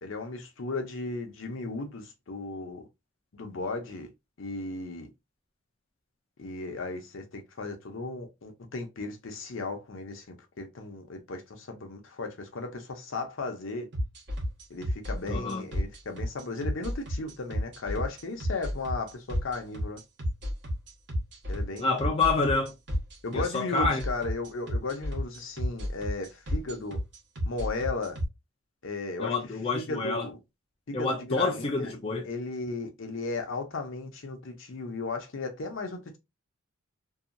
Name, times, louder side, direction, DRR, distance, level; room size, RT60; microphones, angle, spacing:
voice 1, 0.0-2.8 3.3-4.1 4.4-5.1 6.4-13.9 14.7-20.0 21.5-22.1 23.2-27.0 27.5-28.2 28.8-29.4 29.7-30.4 30.9-31.9 32.3-36.2, left 3 dB, 65° left, 0.7 m, -35 dB
sound 1, 13.9-28.2, equal, 60° right, 1.1 m, -31 dB
voice 2, 15.3-15.6 21.8-22.7 23.3-24.0 29.2-30.3 30.9-32.3, left 3 dB, 25° left, 0.4 m, -28 dB
2.7 x 2.3 x 2.5 m
head